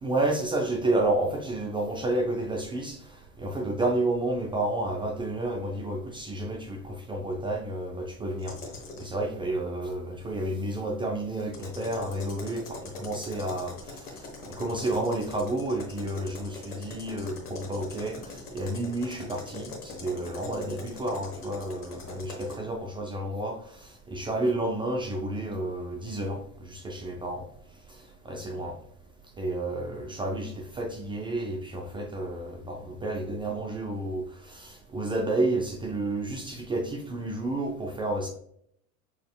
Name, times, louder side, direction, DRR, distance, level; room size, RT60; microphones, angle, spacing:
voice 1, 0.0-3.0 3.4-8.5 9.0-13.7 14.5-18.2 18.5-27.4 28.3-28.8 29.4-38.3, right 2 dB, 10° right, 2 dB, 0.3 m, -30 dB
sound 1, 8.4-9.1 11.4-22.6, left 3 dB, 85° left, 1.1 m, -43 dB
6.6 x 3.0 x 2.2 m, 0.70 s
figure-of-eight pair, 75°, 44 cm